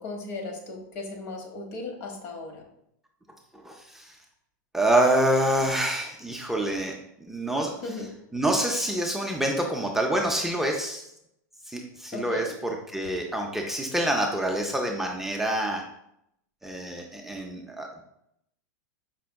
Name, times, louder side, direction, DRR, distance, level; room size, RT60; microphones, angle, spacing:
voice 1, 0.0-2.6 7.8-8.1 12.1-12.5, left 3 dB, 55° left, 2 dB, 1.0 m, -36 dB
voice 2, 3.5-4.2 4.7-6.9 7.2-8.0 8.3-11.1 11.7-15.8 16.6-18.0, right 1 dB, 5° right, 0 dB, 0.4 m, -27 dB
5.1 x 3.3 x 2.2 m, 0.77 s
hypercardioid pair, 120°, 10 cm